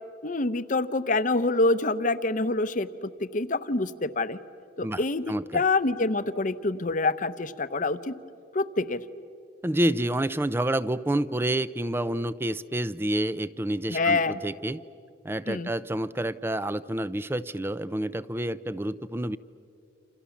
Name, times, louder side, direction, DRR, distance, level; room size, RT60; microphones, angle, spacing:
voice 1, 0.2-4.4 4.8-5.2 5.5-8.1 8.5-9.0 13.9-14.4 15.5-15.7, left 3 dB, 45° left, 13 dB, 0.8 m, -26 dB
voice 2, 4.8-5.6 9.6-14.8 15.2-19.4, right 1 dB, 15° right, 16 dB, 0.5 m, -28 dB
28.0 x 28.0 x 7.2 m, 2.6 s
head